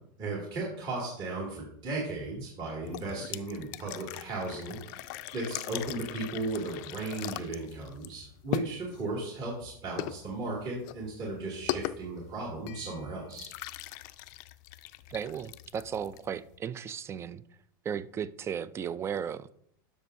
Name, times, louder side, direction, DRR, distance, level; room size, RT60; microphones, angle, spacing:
voice 1, 0.2-13.5, right 2 dB, 40° right, 2.6 m, -36 dB
sound 1, 2.8-16.6, left 15 dB, 60° left, 0.4 m, -41 dB
voice 2, 15.1-17.4 17.8-19.5, right 8 dB, 25° right, 0.4 m, -35 dB
12.0 x 6.2 x 2.7 m
supercardioid pair, 125°, 11 cm